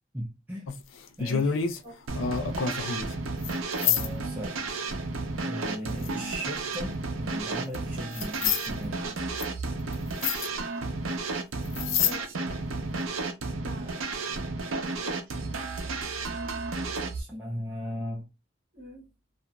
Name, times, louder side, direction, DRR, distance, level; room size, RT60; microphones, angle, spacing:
voice 1, 0.1-0.7 1.2-1.6 3.8-4.7 5.4-9.1 17.1-18.3, equal, 10° right, 0.5 m, -37 dB
sound 1, 0.7-1.8 2.1-3.1 3.4-3.5 3.8-4.1 6.0-6.6 7.7-7.8 8.1-8.7 9.4-9.5 9.9-10.0 10.2-10.5 11.7-12.1 12.5-12.6, left 7 dB, 80° left, 0.4 m, -27 dB
sound 2, 2.1-17.2, right 3 dB, 90° right, 0.6 m, -33 dB
voice 2, 13.6-13.9 14.3-15.5 18.7-19.1, left 1 dB, 45° right, 1.1 m, -46 dB
2.8 x 2.5 x 2.2 m
head